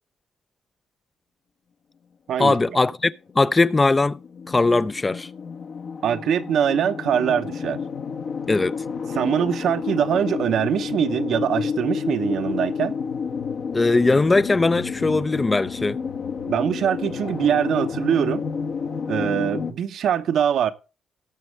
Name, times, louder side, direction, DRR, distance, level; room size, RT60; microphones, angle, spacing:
voice 1, 2.4-4.2 4.5-5.3 8.5-8.7 13.7-16.0, left 3 dB, 20° left, 0.5 m, -20 dB
sound 1, 3.0-19.7, left 5 dB, 60° left, 1.1 m, -30 dB
voice 2, 6.0-7.8 9.1-12.9 16.5-18.4 19.1-20.7, right 9 dB, 70° right, 0.8 m, -23 dB
18.5 x 6.3 x 3.3 m
cardioid pair, 90°, 0 cm